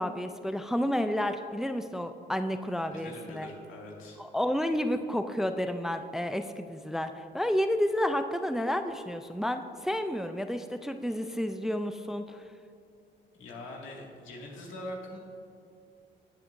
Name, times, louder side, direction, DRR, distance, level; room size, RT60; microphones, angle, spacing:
voice 1, 0.0-3.5 4.2-12.4, equal, ahead, 8 dB, 0.4 m, -31 dB
voice 2, 2.9-4.2 13.4-15.2, left 1 dB, 90° left, -1 dB, 2.1 m, -43 dB
18.5 x 7.6 x 2.6 m, 2.5 s
cardioid pair, 90°, 20 cm